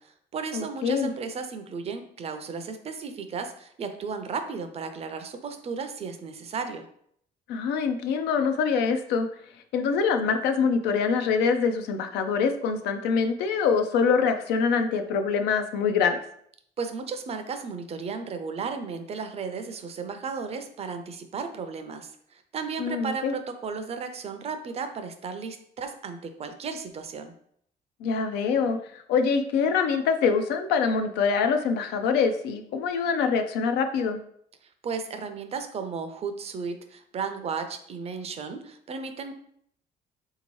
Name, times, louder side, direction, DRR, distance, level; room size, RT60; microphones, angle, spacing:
voice 1, 0.0-6.9 16.8-27.3 34.6-39.3, right 5 dB, 35° right, 7 dB, 0.4 m, -34 dB
voice 2, 0.5-1.1 7.5-9.3 9.7-16.2 22.8-23.3 28.0-34.2, left 5 dB, 85° left, 7 dB, 0.4 m, -24 dB
3.4 x 2.8 x 3.0 m, 0.67 s
cardioid pair, 110°, 17 cm